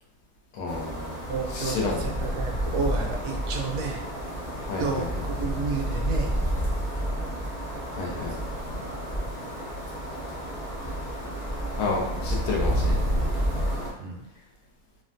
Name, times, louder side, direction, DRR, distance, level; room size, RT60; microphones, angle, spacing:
voice 1, 0.5-2.1 4.5-5.1 7.9-8.3 11.8-13.0, left 3 dB, 85° left, -1 dB, 1.3 m, -31 dB
sound 1, 0.7-13.9, equal, 40° left, 0.5 m, -30 dB
voice 2, 1.3-4.0 4.8-6.4 8.1-8.4 9.2-9.4 14.0-14.3, right 4 dB, 65° right, 1 dB, 0.9 m, -31 dB
3.4 x 2.1 x 2.5 m, 0.88 s
omnidirectional pair, 1.7 m